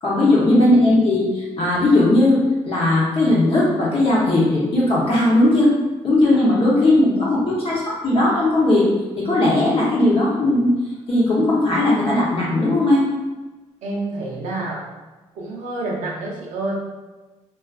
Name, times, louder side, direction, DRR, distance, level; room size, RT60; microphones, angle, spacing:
voice 1, 0.0-5.7 6.0-8.9 9.2-10.7 11.1-13.1, left 1 dB, 45° left, -6 dB, 0.8 m, -17 dB
voice 2, 13.8-14.9 15.3-16.8, right 2 dB, 70° right, -2 dB, 0.7 m, -28 dB
2.4 x 2.4 x 2.3 m, 1.2 s
supercardioid pair, 70°, 13 cm